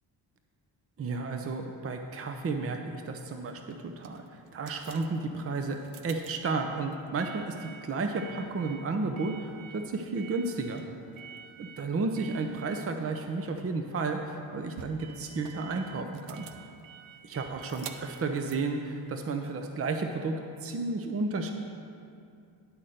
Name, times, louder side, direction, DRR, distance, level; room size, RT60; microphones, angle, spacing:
voice 1, 1.0-10.8 11.6-16.5 17.2-21.5, right 3 dB, 30° right, 5 dB, 0.7 m, -32 dB
sound 1, 3.2-19.7, right 7 dB, 75° right, 0.7 m, -50 dB
11.0 x 4.3 x 6.5 m, 2.4 s
supercardioid pair, 60°, 47 cm